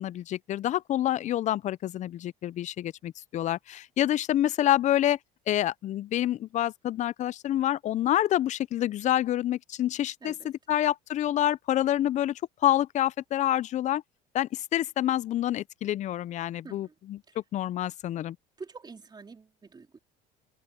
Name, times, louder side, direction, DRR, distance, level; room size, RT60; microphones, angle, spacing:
voice 1, 0.0-5.2 5.5-14.0 14.3-17.2 17.5-18.4, left 12 dB, 40° left, 0.4 m, -27 dB
voice 2, 10.2-10.8 16.6-16.9 17.3-17.4 18.6-20.0, right 4 dB, 20° right, 4.0 m, -47 dB
cardioid pair, 115°, 19 cm